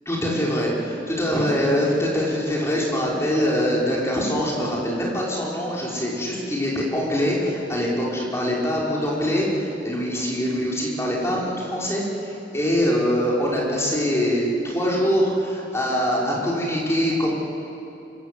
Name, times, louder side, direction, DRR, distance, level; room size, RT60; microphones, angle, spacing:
voice 1, 0.1-17.3, equal, 15° left, -5 dB, 5.3 m, -23 dB
25.5 x 25.5 x 7.8 m, 2.9 s
head